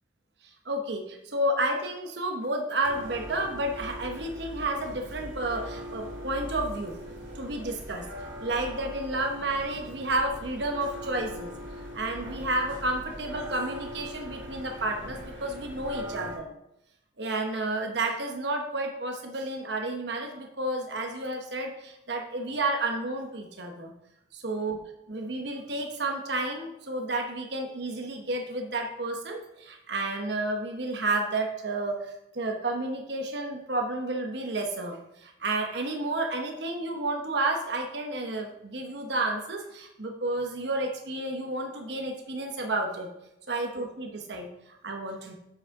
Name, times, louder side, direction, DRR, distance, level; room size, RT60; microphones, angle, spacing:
voice 1, 0.4-7.0 7.3-8.1 8.4-11.5 11.9-16.5 17.2-23.9 24.3-24.8 25.1-43.1 43.5-45.3, right 2 dB, 65° right, 2 dB, 1.0 m, -31 dB
sound 1, 2.8-16.4, equal, 85° right, 2.8 m, -41 dB
7.8 x 6.3 x 4.8 m, 0.84 s
head